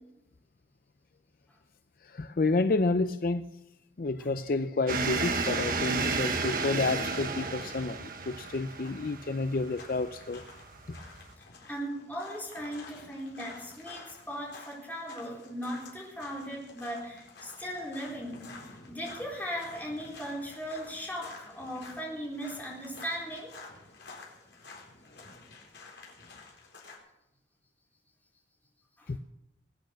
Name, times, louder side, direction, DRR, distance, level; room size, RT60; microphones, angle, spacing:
voice 1, 2.1-3.4 4.0-10.4 10.9-11.0 29.1-29.2, left 3 dB, 50° left, 11 dB, 0.5 m, -30 dB
sound 1, 4.9-11.3, right 4 dB, 50° right, 1.4 m, -33 dB
sound 2, 8.2-27.0, left 3 dB, 80° left, 4.1 m, -50 dB
voice 2, 11.6-23.5 29.0-29.1, equal, 10° left, -3 dB, 4.2 m, -38 dB
20.5 x 9.1 x 6.4 m, 0.87 s
head